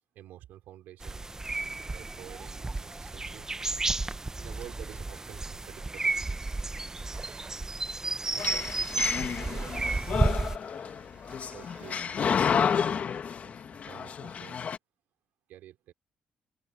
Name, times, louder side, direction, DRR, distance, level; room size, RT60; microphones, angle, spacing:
voice 1, 0.1-1.3 1.9-3.5 4.4-6.2 6.5-6.8 8.3-9.8 11.3-14.6 15.5-15.9, right 13 dB, 80° right, 3.0 m, -50 dB
sound 1, 1.0-10.6, right 2 dB, 20° right, 0.8 m, -32 dB
sound 2, 4.5-12.8, right 5 dB, 35° right, 3.4 m, -52 dB
sound 3, 8.4-14.8, left 7 dB, 50° left, 1.3 m, -30 dB
open air
cardioid pair, 80°, 3 cm